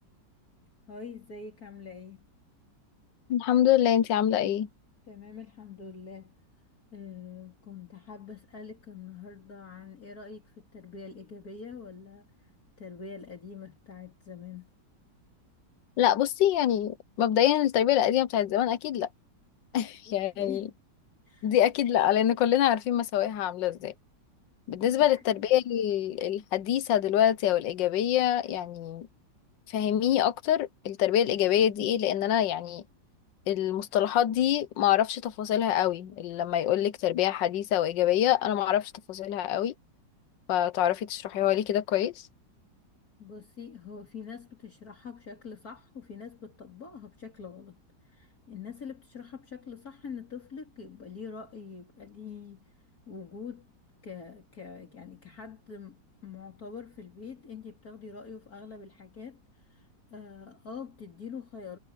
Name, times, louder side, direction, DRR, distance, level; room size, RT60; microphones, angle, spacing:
voice 1, 0.9-2.3 5.1-6.3 6.9-12.5 12.8-14.7 20.1-20.7 21.3-21.5 43.2-52.6 53.1-53.7 54.0-61.8, left 5 dB, 55° left, 3.9 m, -44 dB
voice 2, 3.3-4.7 16.0-19.1 19.7-20.7 21.4-23.9 24.7-29.1 29.7-32.8 33.5-39.7 40.5-42.1, left 11 dB, 85° left, 1.5 m, -25 dB
omnidirectional pair, 1.9 m